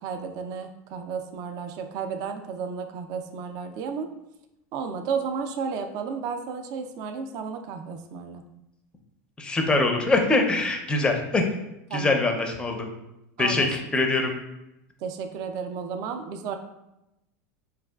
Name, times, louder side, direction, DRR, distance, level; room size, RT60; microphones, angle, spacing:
voice 1, 0.0-4.1 4.7-8.4 11.9-12.1 13.4-13.7 15.0-16.6, right 6 dB, 50° right, 7 dB, 0.4 m, -33 dB
voice 2, 9.4-11.5 11.9-12.9 13.4-14.3, left 2 dB, 10° left, 3 dB, 0.5 m, -23 dB
4.6 x 2.3 x 2.2 m, 0.90 s
supercardioid pair, 130°, 8 cm